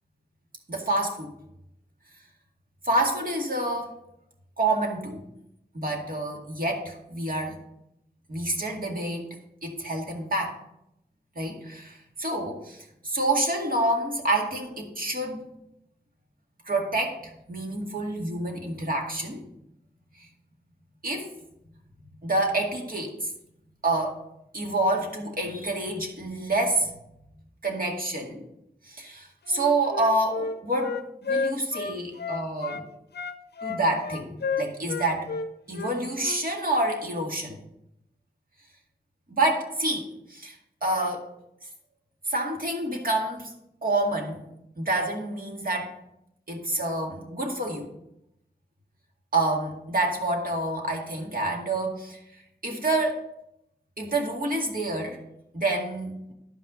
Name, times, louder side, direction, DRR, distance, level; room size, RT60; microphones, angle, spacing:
voice 1, 0.7-1.3 2.8-4.0 4.6-5.2 5.7-7.6 8.3-9.3 9.6-10.6 11.4-15.5 16.7-19.4 20.2-20.3 21.0-21.3 22.2-23.3 23.8-24.2 24.5-26.9 27.6-28.4 28.8-32.8 33.6-35.3 35.7-37.6 39.3-40.6 40.8-41.3 42.3-43.5 43.8-44.5 44.8-45.9 46.5-47.9 49.3-52.2 52.6-53.2 54.0-55.2 55.5-56.2, right 2 dB, 60° right, 0 dB, 2.1 m, -28 dB
Wind instrument woodwind instrument, 29.5-32.9 33.1-36.4, left 5 dB, 85° left, 0.5 m, -31 dB
11.5 x 5.7 x 5.0 m, 0.81 s
wide cardioid pair, 75°, 17 cm